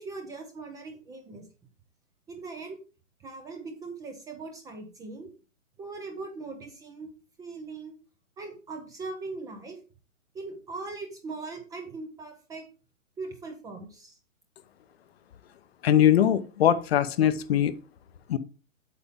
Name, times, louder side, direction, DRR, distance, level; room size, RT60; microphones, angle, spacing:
voice 1, 0.0-1.4 2.3-2.8 3.2-5.3 5.8-7.1 7.4-7.9 8.4-9.8 10.3-12.7 13.2-14.2, right 3 dB, 10° right, 5 dB, 0.6 m, -40 dB
voice 2, 15.8-17.7 18.3-18.4, left 10 dB, 50° left, 13 dB, 0.8 m, -21 dB
8.3 x 6.9 x 3.6 m, 0.34 s
hypercardioid pair, 125°, 41 cm